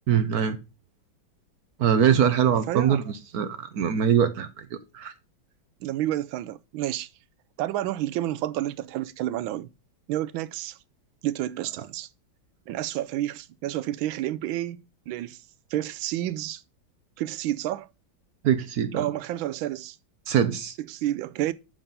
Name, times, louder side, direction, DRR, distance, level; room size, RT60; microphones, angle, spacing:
voice 1, 0.1-0.6 1.8-4.7 4.9-5.1 18.4-19.1 20.3-20.7, right 8 dB, 60° right, 1.1 m, -23 dB
voice 2, 2.7-3.0 5.8-7.1 7.6-9.7 10.1-10.8 11.2-12.1 12.7-15.4 15.7-16.6 17.2-17.9 18.9-20.0 20.8-21.5, right 13 dB, 85° right, 1.4 m, -30 dB
6.8 x 5.8 x 5.3 m
omnidirectional pair, 2.1 m